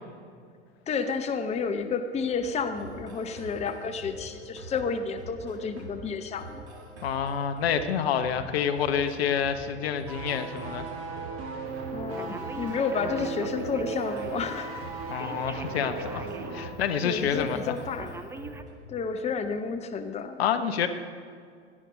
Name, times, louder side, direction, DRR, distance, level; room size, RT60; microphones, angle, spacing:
voice 1, 0.9-6.6 11.9-14.8 17.0-18.1 18.9-20.4, left 5 dB, 20° left, 8 dB, 0.9 m, -31 dB
sound 1, 2.3-18.7, right 2 dB, 70° right, 2.6 m, -45 dB
voice 2, 7.0-10.9 15.1-16.2 16.5-17.6 20.4-20.9, left 8 dB, 60° left, 9 dB, 1.0 m, -28 dB
sound 2, 10.1-16.8 17.0-17.2, right 4 dB, 35° right, 2.1 m, -37 dB
Telephone, 12.2-14.5 15.1-16.6 17.0-17.1 18.0-18.6, right 3 dB, 5° right, 0.6 m, -42 dB
17.5 x 11.0 x 5.1 m, 2.2 s
figure-of-eight pair, 85°, 35 cm